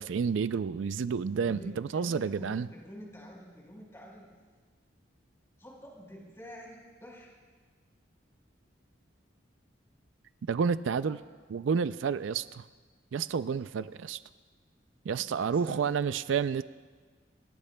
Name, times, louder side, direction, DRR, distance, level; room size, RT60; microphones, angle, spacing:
voice 1, 0.0-2.7 10.5-11.2 11.5-12.6 13.1-14.2 15.0-16.6, right 6 dB, 80° right, 14 dB, 0.4 m, -30 dB
voice 2, 1.4-4.3 5.6-7.3 10.9-11.2 15.2-16.1, equal, 15° left, -2 dB, 4.4 m, -48 dB
27.5 x 18.5 x 2.2 m, 1.5 s
head